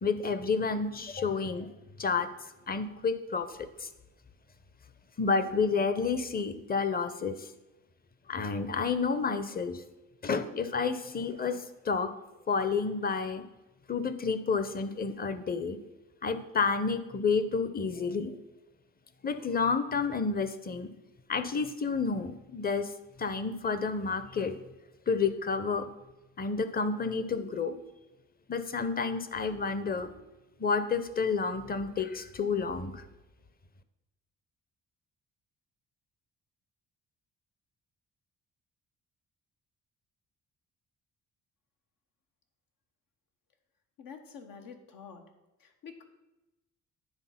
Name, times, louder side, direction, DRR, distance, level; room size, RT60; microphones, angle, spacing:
voice 1, 0.0-1.7 2.0-2.3 2.7-3.9 5.2-7.5 8.3-9.8 10.2-12.1 12.5-13.4 13.9-15.8 16.2-18.3 19.2-20.9 21.3-22.9 23.2-24.6 25.1-25.9 26.4-27.8 28.5-30.2 30.6-33.0, left 5 dB, 25° left, 11 dB, 0.6 m, -30 dB
voice 2, 44.0-45.2 45.6-46.0, left 6 dB, 85° left, 5 dB, 1.1 m, -47 dB
9.8 x 3.7 x 5.7 m, 1.0 s
cardioid pair, 90°, 33 cm